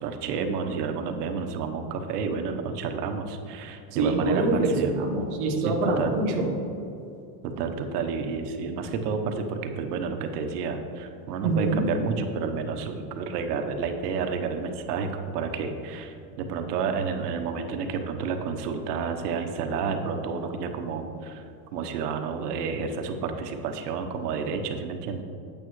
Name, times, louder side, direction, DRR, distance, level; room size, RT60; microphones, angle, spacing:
voice 1, 0.0-4.9 5.6-6.1 7.4-21.4 21.7-25.2, right 5 dB, 70° right, 6 dB, 1.0 m, -30 dB
voice 2, 3.9-6.6 11.4-11.8, right 2 dB, 20° right, 0 dB, 0.3 m, -25 dB
8.7 x 8.6 x 3.1 m, 2.6 s
supercardioid pair, 155°, 49 cm